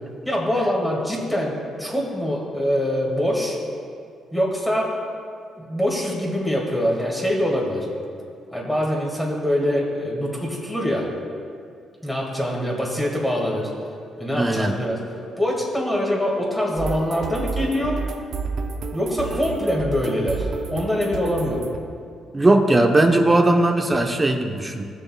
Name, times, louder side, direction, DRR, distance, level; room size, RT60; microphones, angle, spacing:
voice 1, 0.3-1.5 1.8-3.6 4.3-4.9 5.6-7.9 8.5-11.1 12.0-13.7 14.2-15.0 15.4-17.9 18.9-21.7, equal, 5° left, -3 dB, 2.0 m, -24 dB
voice 2, 14.3-14.8 22.3-24.9, right 2 dB, 20° right, 4 dB, 0.9 m, -18 dB
sound 1, 16.8-21.8, right 4 dB, 65° right, 0.7 m, -30 dB
17.0 x 6.7 x 2.3 m, 2.3 s
cardioid pair, 90°, 0 cm